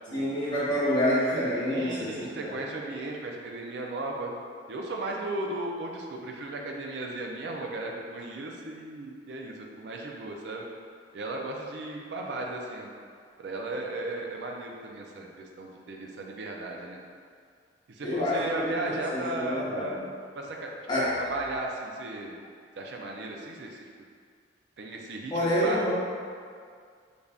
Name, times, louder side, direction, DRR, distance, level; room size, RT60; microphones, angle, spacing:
voice 1, 0.1-2.5 18.0-19.9 20.9-21.1 25.3-25.9, equal, 25° left, -10 dB, 0.9 m, -28 dB
voice 2, 1.7-4.4 4.7-10.6 11.1-12.9 13.4-17.0 17.9-20.7 21.2-22.3 22.8-23.8 24.8-25.8, right 2 dB, 70° right, 0 dB, 0.4 m, -36 dB
2.5 x 2.3 x 3.3 m, 2.1 s
head